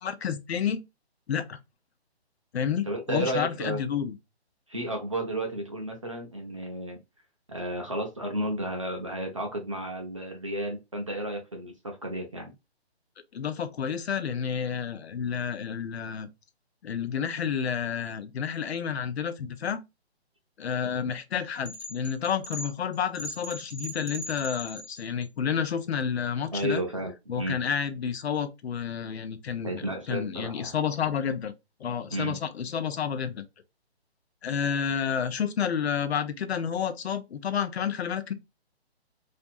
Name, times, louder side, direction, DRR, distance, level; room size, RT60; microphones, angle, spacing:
voice 1, 0.0-0.8 1.3-1.6 2.5-4.2 13.3-16.3 16.8-19.8 20.6-26.8 27.3-31.5 31.8-33.4 34.4-38.3, left 7 dB, 70° left, 0.5 m, -30 dB
voice 2, 2.9-3.8 4.7-7.0 7.5-12.5 26.5-27.7 29.6-30.7 32.1-32.4, right 1 dB, 30° right, 0.4 m, -32 dB
sound 1, 21.7-25.2, left 1 dB, 25° left, 0.5 m, -39 dB
2.5 x 2.2 x 2.6 m
hypercardioid pair, 170°, 33 cm